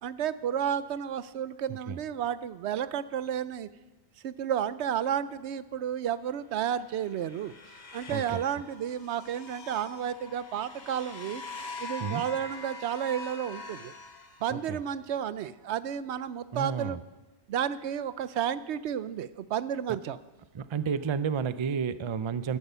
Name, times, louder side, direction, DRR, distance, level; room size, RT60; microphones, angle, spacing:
voice 1, 0.0-3.7 4.2-7.5 7.9-11.4 11.8-13.9 14.4-17.0 17.5-20.2, right 9 dB, 80° right, 15 dB, 0.9 m, -32 dB
voice 2, 1.7-2.0 8.1-8.4 12.0-12.2 14.5-14.8 16.5-17.0 19.9-20.0 20.5-22.6, right 6 dB, 40° right, 13 dB, 0.4 m, -31 dB
sound 1, 6.6-14.9, left 3 dB, 40° left, 1.2 m, -44 dB
15.0 x 11.5 x 5.6 m, 1.1 s
omnidirectional pair, 1.1 m